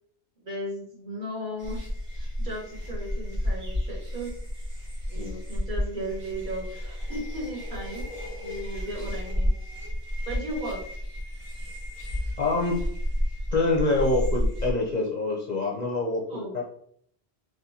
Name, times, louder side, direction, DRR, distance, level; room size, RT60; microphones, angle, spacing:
voice 1, 0.4-1.9 2.1-4.4 5.1-8.0 8.3-9.5 10.3-10.8 16.3-16.6, right 1 dB, 50° right, -3 dB, 1.3 m, -36 dB
sound 1, 1.6-14.7, left 1 dB, 30° right, 1.0 m, -31 dB
voice 2, 12.4-12.7 13.5-16.6, left 2 dB, 45° left, -2 dB, 0.7 m, -26 dB
4.0 x 3.2 x 2.7 m, 0.64 s
omnidirectional pair, 1.1 m